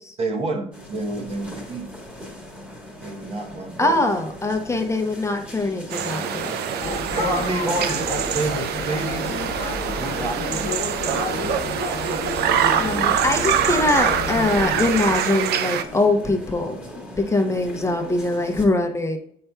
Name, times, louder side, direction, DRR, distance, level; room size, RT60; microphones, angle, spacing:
voice 1, 0.2-1.9 3.0-4.1 7.2-9.4 10.0-10.9 11.3-12.0 12.3-12.5 13.1-13.2, right 2 dB, 35° right, 4 dB, 1.0 m, -29 dB
sound 1, 0.7-18.7, equal, 5° right, 1.5 m, -39 dB
voice 2, 3.8-6.5 12.8-16.8 17.3-19.2, left 2 dB, 15° left, 4 dB, 0.7 m, -22 dB
sound 2, 5.9-15.8, right 9 dB, 70° right, 0.6 m, -25 dB
sound 3, 6.8-15.2, left 4 dB, 40° left, 1.1 m, -31 dB
7.5 x 5.6 x 2.3 m, 0.66 s
cardioid pair, 110°, 17 cm